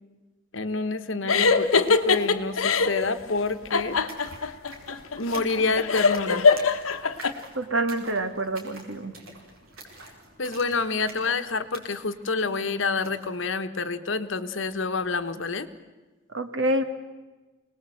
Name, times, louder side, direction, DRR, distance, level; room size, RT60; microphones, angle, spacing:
voice 1, 0.5-4.0 5.2-6.5 10.4-15.7, left 3 dB, 60° left, 11 dB, 1.2 m, -28 dB
sound 1, 1.3-3.0 3.7-7.3, left 5 dB, 90° left, 1.2 m, -22 dB
sound 2, 2.9-3.0 3.2-13.4, right 2 dB, 85° right, 4.5 m, -47 dB
voice 2, 7.6-9.1 16.3-16.8, right 1 dB, 65° right, 9 dB, 1.8 m, -27 dB
25.0 x 19.5 x 7.8 m, 1.2 s
head